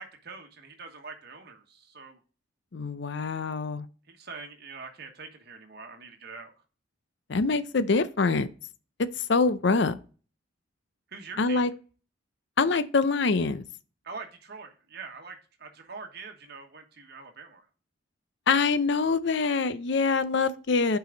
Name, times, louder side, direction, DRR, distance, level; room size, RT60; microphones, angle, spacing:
voice 1, 0.0-2.2 4.1-6.5 11.1-11.7 14.0-17.7, right 4 dB, 50° right, 1.3 m, -44 dB
voice 2, 2.7-3.9 7.3-8.5 9.3-10.0 11.4-11.7 12.6-13.6 18.5-21.0, left 4 dB, 60° left, 0.5 m, -25 dB
8.2 x 4.8 x 3.9 m
head